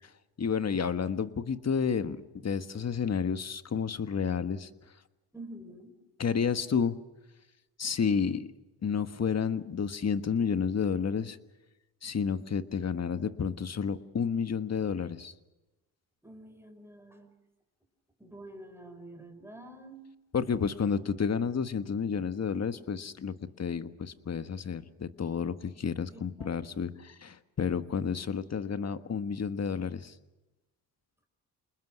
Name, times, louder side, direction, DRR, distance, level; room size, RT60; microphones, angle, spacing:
voice 1, 0.4-4.7 6.2-7.0 7.8-8.5 8.8-11.4 12.0-15.3 20.3-30.1, left 6 dB, 35° left, 10 dB, 1.5 m, -31 dB
voice 2, 5.3-5.9 16.2-17.3 18.2-20.1 26.1-26.6, right 1 dB, 5° right, 6 dB, 5.2 m, -48 dB
28.5 x 20.5 x 6.3 m, 1.0 s
supercardioid pair, 70°, 43 cm